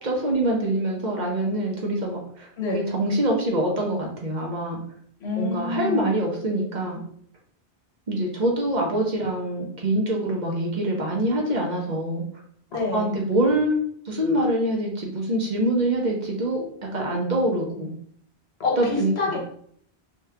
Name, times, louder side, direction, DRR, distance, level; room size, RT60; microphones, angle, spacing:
voice 1, 0.0-4.8 5.4-7.0 8.1-12.2 12.9-13.8 14.0-16.7 16.9-17.9 18.8-19.4, right 1 dB, 45° right, -1 dB, 0.8 m, -25 dB
voice 2, 5.2-6.1 12.7-13.1 18.6-19.4, left 3 dB, 75° left, -1 dB, 1.2 m, -27 dB
3.1 x 2.4 x 3.2 m, 0.62 s
omnidirectional pair, 1.1 m